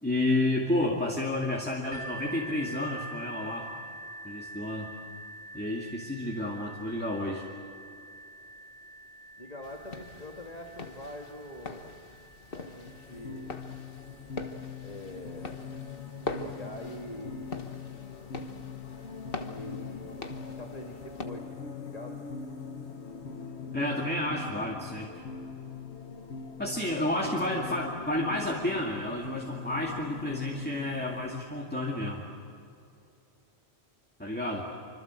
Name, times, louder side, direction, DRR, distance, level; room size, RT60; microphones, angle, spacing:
voice 1, 0.0-3.7 4.2-4.9 5.5-7.5 23.7-25.1 26.6-32.2 34.2-34.7, left 1 dB, 10° left, -2 dB, 2.4 m, -30 dB
sound 1, 1.9-17.5 18.2-18.3 18.9-19.0, right 2 dB, 85° right, 2.3 m, -47 dB
voice 2, 9.4-12.0 12.5-13.6 14.8-15.6 16.4-17.7 19.5-20.2 20.5-22.2, left 1 dB, 40° left, 1 dB, 1.9 m, -44 dB
sound 2, 9.6-21.2, left 3 dB, 60° left, 1.6 m, -43 dB
sound 3, 12.8-31.4, left 5 dB, 85° left, 1.5 m, -42 dB
26.0 x 26.0 x 7.7 m, 2.6 s
omnidirectional pair, 1.1 m